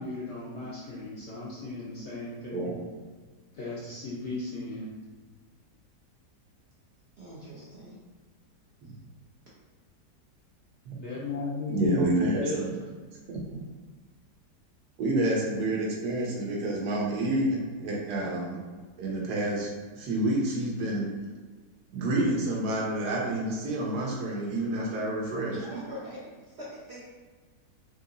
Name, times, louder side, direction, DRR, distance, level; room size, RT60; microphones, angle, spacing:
voice 1, 0.0-2.8 3.5-4.9 10.9-12.0 12.4-12.7, left 3 dB, 65° left, -7 dB, 0.7 m, -35 dB
voice 2, 7.2-8.0 25.5-27.0, right 1 dB, 65° right, -7 dB, 0.6 m, -41 dB
voice 3, 11.7-12.7 13.3-13.6 15.0-18.6 19.0-21.1 21.9-25.5, right 1 dB, 80° right, -2 dB, 1.3 m, -28 dB
3.7 x 2.8 x 2.5 m, 1.4 s
omnidirectional pair, 1.7 m